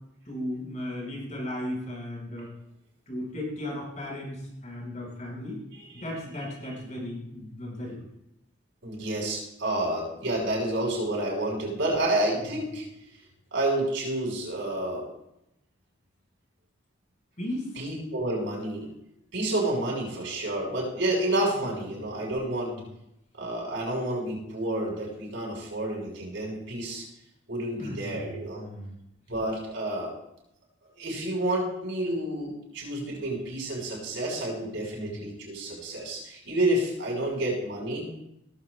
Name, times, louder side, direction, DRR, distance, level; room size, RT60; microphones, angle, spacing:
voice 1, 0.2-2.5 3.1-5.6 5.9-8.0 17.4-17.7 22.7-22.8 27.8-28.9 35.0-35.1, left 1 dB, 40° left, -2 dB, 5.8 m, -36 dB
voice 2, 8.8-12.9 13.5-15.1 17.8-18.9 19.3-22.7 23.4-27.0 27.5-28.6 29.3-30.1 31.0-38.1, right 1 dB, 70° right, -3 dB, 5.7 m, -29 dB
18.0 x 14.5 x 2.4 m, 0.82 s
head